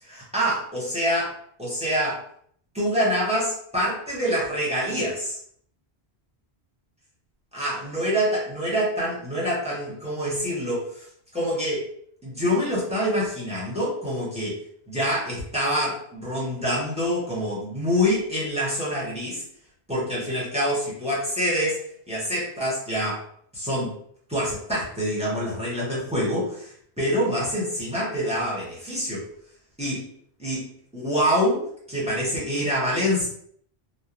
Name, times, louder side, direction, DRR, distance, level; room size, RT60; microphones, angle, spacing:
voice 1, 0.0-2.2 2.7-5.4 7.5-10.8 11.3-11.9 12.2-14.6 14.9-19.4 19.9-21.8 22.1-23.2 23.5-23.9 24.3-26.7 27.0-29.2 29.8-30.0 30.4-30.6 30.9-31.6 31.9-33.3, equal, 5° right, -7 dB, 0.9 m, -26 dB
3.1 x 2.0 x 2.5 m, 0.62 s
omnidirectional pair, 1.1 m